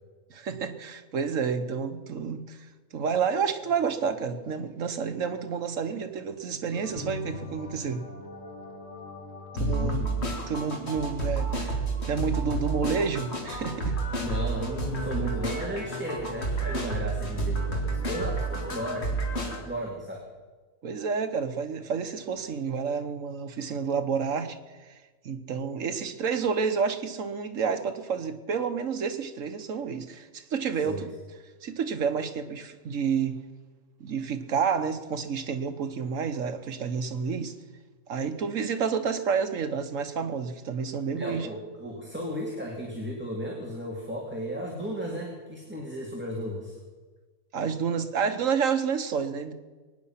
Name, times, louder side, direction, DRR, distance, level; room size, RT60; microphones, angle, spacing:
voice 1, 0.3-2.6 2.9-8.1 9.6-11.7 12.1-14.0 20.8-24.6 24.9-25.0 25.2-31.1 31.6-33.4 34.0-37.5 38.1-41.5 47.5-49.5, right 6 dB, 75° right, 8 dB, 1.4 m, -29 dB
sound 1, 6.7-19.6, right 3 dB, 50° left, 2.4 m, -31 dB
voice 2, 9.5-10.0 14.2-19.2 19.5-20.2 30.8-31.1 41.1-46.7, equal, 10° right, -2 dB, 2.1 m, -34 dB
22.5 x 9.9 x 5.8 m, 1.3 s
omnidirectional pair, 1.4 m